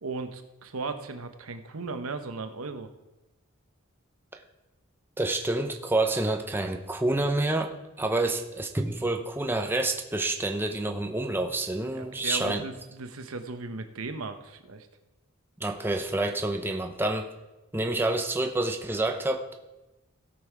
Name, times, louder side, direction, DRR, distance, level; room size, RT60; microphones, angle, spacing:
voice 1, 0.0-2.9 11.9-14.9, right 3 dB, 70° right, 8 dB, 0.9 m, -36 dB
voice 2, 5.2-12.7 15.6-17.3 17.7-19.5, right 2 dB, 10° right, 4 dB, 0.6 m, -28 dB
16.5 x 5.6 x 4.7 m, 1.0 s
head